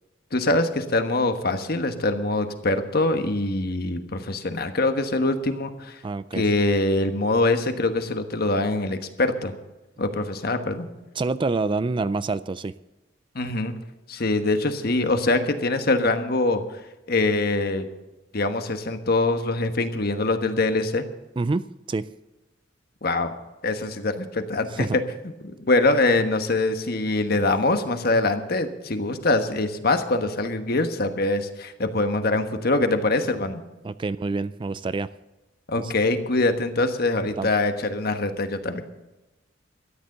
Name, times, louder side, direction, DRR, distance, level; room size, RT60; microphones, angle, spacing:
voice 1, 0.3-6.0 6.3-9.5 10.0-10.9 13.3-13.7 14.1-16.6 17.1-17.9 18.3-21.0 23.0-23.3 23.6-25.0 25.4-33.6 35.7-38.8, left 2 dB, 55° left, 7 dB, 1.3 m, -23 dB
voice 2, 6.0-6.4 11.2-12.7 21.4-22.1 24.7-25.0 27.3-27.4 33.8-35.1 35.8-35.9 37.4-37.5, right 3 dB, 25° right, 15 dB, 0.3 m, -27 dB
13.5 x 10.0 x 6.6 m, 1.0 s
head